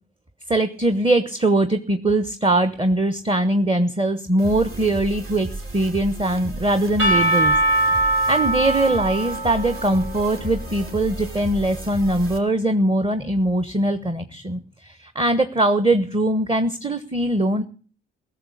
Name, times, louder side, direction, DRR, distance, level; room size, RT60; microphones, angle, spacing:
voice 1, 0.5-7.6 8.3-17.6, right 1 dB, 15° right, 10 dB, 1.1 m, -21 dB
sound 1, 4.4-12.4, right 2 dB, 45° right, 3.1 m, -34 dB
Percussion / Church bell, 7.0-11.0, right 2 dB, 85° right, 3.5 m, -22 dB
17.5 x 6.7 x 8.4 m, 0.42 s
hypercardioid pair, 45°, 30 cm